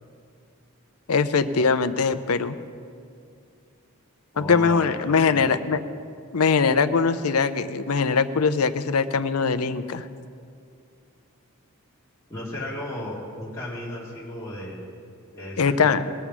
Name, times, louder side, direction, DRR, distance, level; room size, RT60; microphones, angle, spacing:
voice 1, 1.1-2.6 4.4-5.8 6.3-10.1 15.6-16.0, left 5 dB, 85° left, 12 dB, 0.6 m, -21 dB
voice 2, 4.3-5.0 5.2-5.6 12.3-14.8 15.3-16.1, left 1 dB, 15° left, -8 dB, 2.4 m, -35 dB
21.0 x 7.1 x 6.1 m, 2.4 s
head